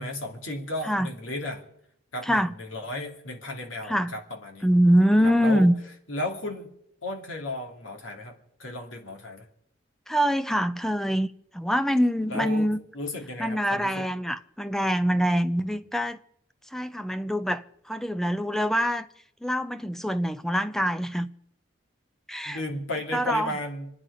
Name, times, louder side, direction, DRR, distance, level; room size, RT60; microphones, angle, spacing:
voice 1, 0.0-1.6 2.1-4.7 5.2-5.7 6.1-6.7 7.0-9.5 12.3-12.7 12.9-14.1 22.4-23.9, left 1 dB, 90° left, 2.7 m, -34 dB
voice 2, 2.2-2.5 3.9-4.1 4.6-5.7 10.1-11.3 11.5-12.8 13.4-16.2 16.7-19.1 19.4-21.3 22.3-22.6 23.1-23.5, equal, ahead, 0.5 m, -24 dB
26.5 x 9.7 x 5.0 m
head